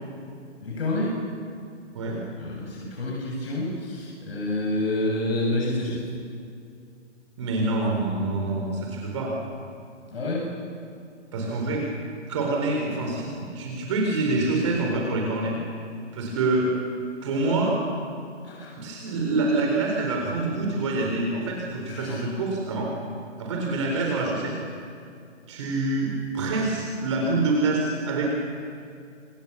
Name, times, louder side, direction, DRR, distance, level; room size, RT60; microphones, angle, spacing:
voice 1, 0.6-1.3 2.4-6.0 10.1-10.5 18.4-18.7 21.9-22.2, left 1 dB, 55° left, -2 dB, 7.1 m, -28 dB
voice 2, 7.4-9.3 11.3-11.9 12.3-15.6 16.1-16.7 17.2-17.8 18.8-22.9 23.4-24.5 25.5-28.3, right 2 dB, 25° right, -1 dB, 4.2 m, -26 dB
28.5 x 26.5 x 7.0 m, 2.4 s
hypercardioid pair, 175°, 36 cm